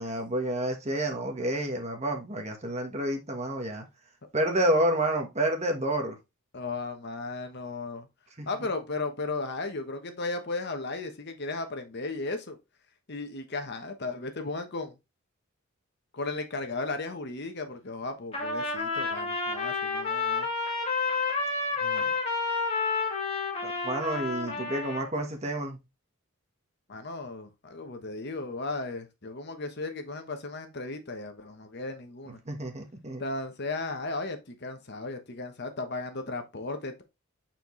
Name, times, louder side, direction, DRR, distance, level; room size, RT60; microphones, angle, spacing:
voice 1, 0.0-3.9 4.3-6.1 8.4-8.5 21.8-22.1 23.6-25.8 32.5-33.2, right 1 dB, 30° right, 1.3 m, -29 dB
voice 2, 6.5-8.1 8.5-12.6 13.1-14.9 16.1-20.5 26.9-32.4 33.2-37.0, left 3 dB, 50° left, 1.1 m, -35 dB
Trumpet, 18.3-25.1, left 4 dB, 25° left, 2.0 m, -30 dB
7.7 x 4.4 x 3.1 m
head